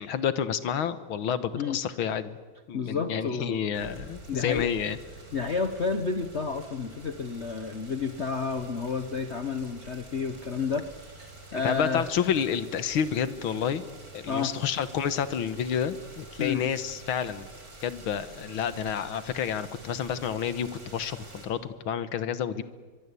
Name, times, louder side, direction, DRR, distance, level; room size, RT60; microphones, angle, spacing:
voice 1, 0.0-2.4 2.7-5.0 11.5-13.8 14.1-17.5 17.8-22.6, left 8 dB, 80° left, 13 dB, 2.1 m, -29 dB
voice 2, 2.7-3.6 4.3-4.7 5.3-12.0 14.3-14.5 16.4-16.6, left 5 dB, 40° left, 8 dB, 1.2 m, -31 dB
sound 1, 3.7-21.5, right 2 dB, 45° right, 4.8 m, -48 dB
23.5 x 23.0 x 8.4 m, 1.5 s
omnidirectional pair, 2.2 m